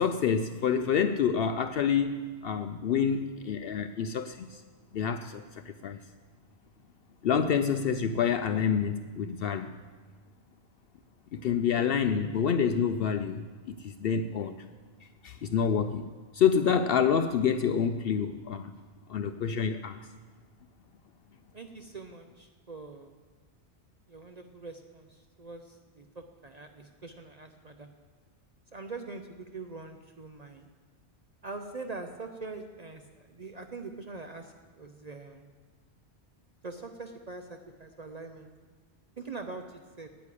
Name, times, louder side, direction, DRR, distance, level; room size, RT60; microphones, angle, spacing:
voice 1, 0.0-2.2 2.4-4.6 4.9-6.0 7.2-9.7 11.3-13.4 13.7-14.5 15.2-16.0 16.3-18.7 19.1-20.0, left 7 dB, 65° left, 9 dB, 0.7 m, -27 dB
voice 2, 21.5-23.1 24.1-27.9 28.7-30.7 31.4-35.5 36.6-38.5 39.2-40.1, right 3 dB, 40° right, 5 dB, 0.7 m, -43 dB
9.6 x 9.1 x 8.3 m, 1.4 s
omnidirectional pair, 1.2 m